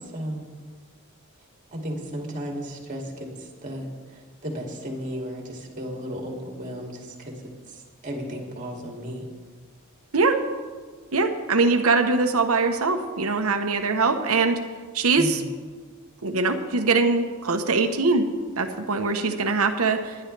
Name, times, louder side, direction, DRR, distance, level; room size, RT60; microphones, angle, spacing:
voice 1, 0.1-0.5 1.7-3.1 3.6-7.3 8.0-9.2 15.2-15.4, equal, 40° right, 0 dB, 2.6 m, -34 dB
voice 2, 11.1-14.6 14.9-15.4 16.2-18.3 18.6-20.2, right 3 dB, 85° right, 5 dB, 1.1 m, -22 dB
20.0 x 11.0 x 3.4 m, 1.5 s
head